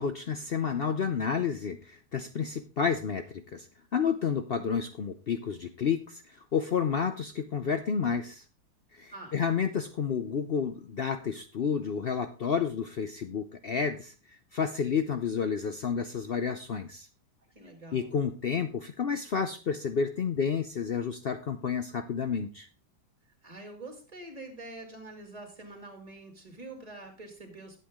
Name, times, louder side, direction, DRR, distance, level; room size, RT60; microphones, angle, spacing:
voice 1, 0.0-3.7 3.9-8.4 8.9-14.1 14.5-17.1 17.9-22.7, left 6 dB, 70° left, 9 dB, 0.5 m, -30 dB
voice 2, 17.5-18.2 23.4-27.8, right 2 dB, 20° right, 3 dB, 2.7 m, -45 dB
11.5 x 8.2 x 3.7 m, 0.33 s
omnidirectional pair, 1.8 m